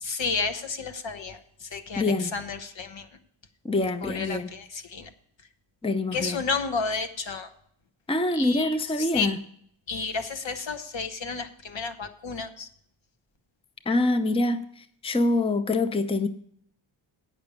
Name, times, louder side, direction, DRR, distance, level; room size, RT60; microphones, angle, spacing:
voice 1, 0.0-3.1 4.0-5.1 6.1-7.5 8.3-9.3 9.9-12.7, left 4 dB, 65° left, 8 dB, 1.1 m, -32 dB
voice 2, 2.0-2.3 3.6-4.5 5.8-6.4 8.1-9.4 13.9-16.3, left 2 dB, 10° left, 10 dB, 0.6 m, -25 dB
8.8 x 6.1 x 8.2 m, 0.64 s
cardioid pair, 65°, 49 cm